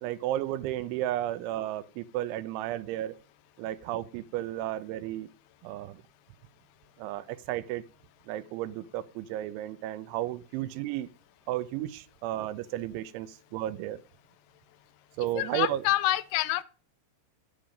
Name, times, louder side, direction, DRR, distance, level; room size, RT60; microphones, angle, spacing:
voice 1, 0.0-3.2 3.6-5.3 5.6-6.0 7.0-7.8 8.3-11.1 11.5-14.0 15.2-15.8, right 13 dB, 85° right, 3.1 m, -33 dB
voice 2, 15.3-16.6, left 16 dB, 80° left, 2.4 m, -27 dB
10.5 x 8.7 x 5.1 m
omnidirectional pair, 5.4 m